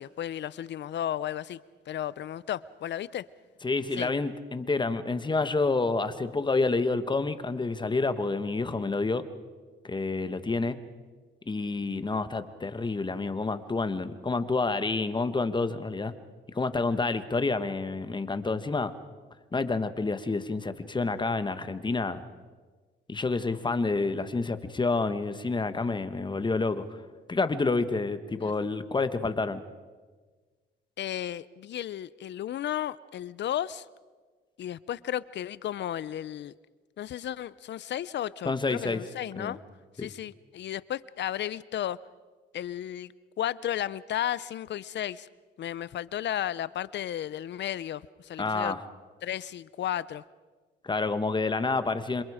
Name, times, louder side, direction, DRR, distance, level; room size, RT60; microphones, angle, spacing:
voice 1, 0.0-1.6 1.9-3.3 4.0-4.1 28.4-28.5 31.0-33.9 34.6-36.5 37.0-39.6 40.0-42.0 42.5-43.1 43.4-45.3 45.6-48.8 49.2-50.2, left 11 dB, 60° left, 19 dB, 0.6 m, -34 dB
voice 2, 3.6-9.2 9.8-10.8 11.5-16.1 16.5-18.9 19.5-22.2 23.1-26.8 27.3-29.6 38.4-39.0 39.4-39.5 40.0-40.1 48.4-48.8 50.8-52.2, left 3 dB, 25° left, 11 dB, 1.4 m, -28 dB
27.5 x 26.5 x 5.0 m, 1.4 s
cardioid pair, 90°, 20 cm